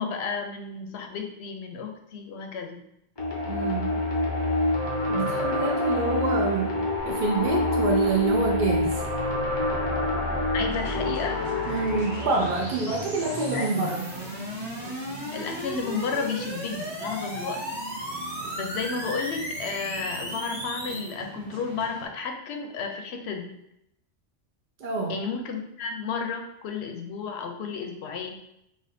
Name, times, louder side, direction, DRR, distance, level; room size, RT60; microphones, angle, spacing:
voice 1, 0.0-2.8 10.5-11.4 12.9-13.0 13.5-13.9 15.3-17.8 18.6-23.5 25.1-28.4, left 5 dB, 65° left, 4 dB, 0.8 m, -32 dB
sound 1, 3.2-12.5, left 2 dB, 35° left, 0.5 m, -27 dB
voice 2, 3.5-3.9 5.1-9.0 11.7-14.0 24.8-25.2, right 3 dB, 55° right, 0 dB, 0.6 m, -27 dB
sound 2, 7.0-21.1, equal, ahead, 1.0 m, -36 dB
sound 3, 10.7-22.1, right 3 dB, 85° right, 1.0 m, -43 dB
4.2 x 2.5 x 2.6 m, 0.80 s
omnidirectional pair, 1.2 m